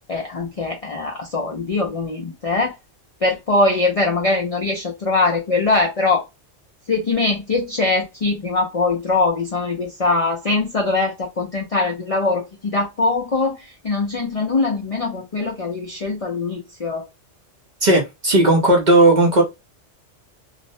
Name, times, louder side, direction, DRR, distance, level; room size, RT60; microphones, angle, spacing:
voice 1, 0.1-2.8 3.2-6.2 6.9-17.0, left 3 dB, 50° left, 0.4 m, -22 dB
voice 2, 17.8-19.4, right 1 dB, 50° right, 0.6 m, -15 dB
2.4 x 2.0 x 2.6 m
omnidirectional pair, 1.2 m